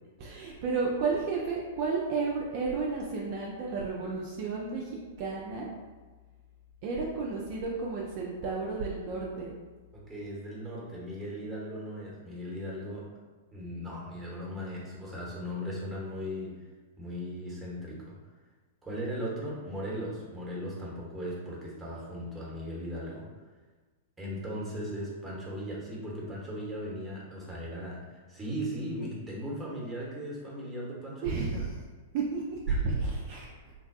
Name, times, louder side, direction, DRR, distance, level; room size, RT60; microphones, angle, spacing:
voice 1, 0.2-5.7 6.8-9.5 31.2-31.7 32.1-33.5, right 4 dB, 45° right, -3 dB, 0.4 m, -32 dB
voice 2, 9.9-13.0 13.5-16.5 17.0-18.1 18.8-23.3 24.2-31.7 32.7-33.0, equal, 10° right, -5 dB, 0.9 m, -38 dB
3.2 x 2.2 x 2.5 m, 1.3 s
figure-of-eight pair, 100°, 0 cm